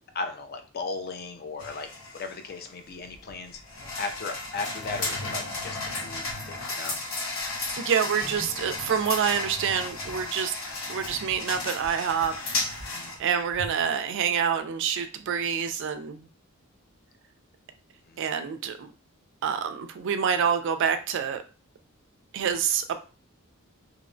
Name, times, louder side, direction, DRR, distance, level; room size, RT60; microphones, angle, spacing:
voice 1, 0.1-3.6 4.0-7.0 12.9-13.1 18.1-18.2, left 3 dB, 45° left, 6 dB, 0.4 m, -36 dB
sound 1, 1.6-14.0, left 2 dB, 65° left, 0.9 m, -34 dB
voice 2, 7.8-10.5 10.9-12.3 12.6-12.8 13.2-16.3 18.2-18.9 19.4-21.4 22.3-23.0, right 7 dB, 60° right, 9 dB, 0.3 m, -27 dB
2.7 x 2.1 x 2.5 m, 0.35 s
head